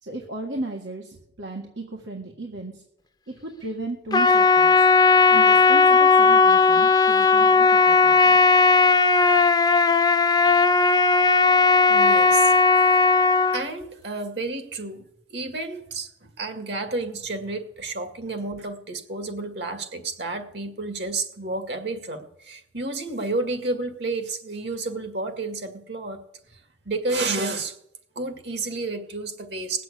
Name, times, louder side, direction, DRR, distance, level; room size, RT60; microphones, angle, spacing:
voice 1, 0.0-2.8 3.3-4.8 5.3-8.4, right 2 dB, 90° right, 0 dB, 1.8 m, -35 dB
Trumpet, 4.1-13.6, left 4 dB, 25° left, 0.6 m, -17 dB
voice 2, 11.9-12.5 13.5-15.0 15.3-26.2 26.5-27.8 28.2-29.8, right 3 dB, 65° right, 7 dB, 2.0 m, -31 dB
19.0 x 7.6 x 8.5 m, 0.78 s
head